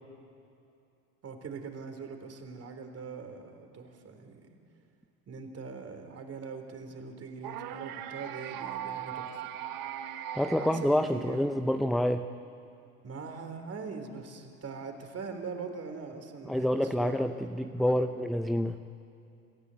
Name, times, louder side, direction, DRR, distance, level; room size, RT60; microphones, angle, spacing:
voice 1, 1.2-4.6 5.3-9.4 10.6-11.5 13.0-18.1, right 5 dB, 30° right, 6 dB, 3.5 m, -42 dB
sound 1, 7.4-11.6, right 11 dB, 50° right, 1.5 m, -39 dB
voice 2, 10.3-12.3 16.5-18.8, left 1 dB, ahead, 8 dB, 0.6 m, -27 dB
27.0 x 15.0 x 8.3 m, 2.6 s
hypercardioid pair, 85°, 45 cm